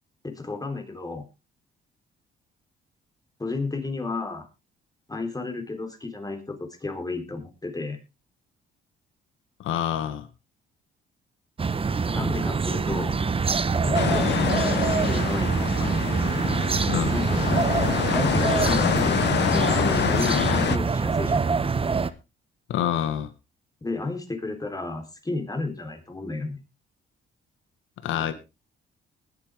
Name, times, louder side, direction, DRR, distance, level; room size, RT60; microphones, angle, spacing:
voice 1, 0.2-1.2 3.4-4.5 5.1-8.0 12.1-13.2 13.8-15.9 17.1-17.4 18.1-21.4 23.8-26.6 28.0-28.3, left 3 dB, 20° left, 5 dB, 3.7 m, -32 dB
voice 2, 9.6-10.3 16.9-17.1 22.7-23.3 28.0-28.3, left 10 dB, 85° left, 10 dB, 1.6 m, -26 dB
sound 1, 11.6-22.1, right 5 dB, 30° right, 1.0 m, -25 dB
sound 2, 13.9-20.8, left 10 dB, 60° left, 0.8 m, -26 dB
20.0 x 8.6 x 3.6 m, 0.28 s
cardioid pair, 90°, 20 cm